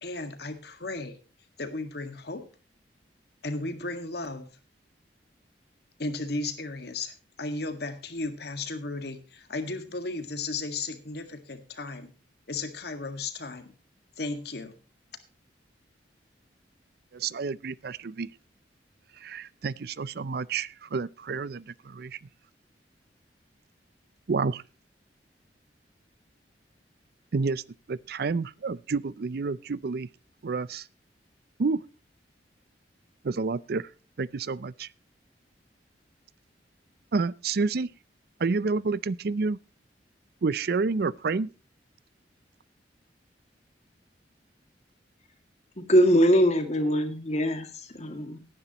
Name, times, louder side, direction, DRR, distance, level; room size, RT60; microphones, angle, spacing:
voice 1, 0.0-1.2 1.6-2.5 3.4-4.5 6.0-12.1 12.5-13.7 14.2-14.7, left 3 dB, 65° left, 1.8 m, -35 dB
voice 2, 17.1-18.3 19.2-22.2 24.3-24.6 27.3-27.6 27.9-30.1 30.4-30.9 31.6-31.8 33.2-33.9 34.2-34.9 37.1-37.9 38.4-39.6 40.4-41.5, right 4 dB, 60° right, 0.5 m, -29 dB
voice 3, 45.8-48.4, equal, 40° left, 2.2 m, -22 dB
18.0 x 10.0 x 3.0 m
head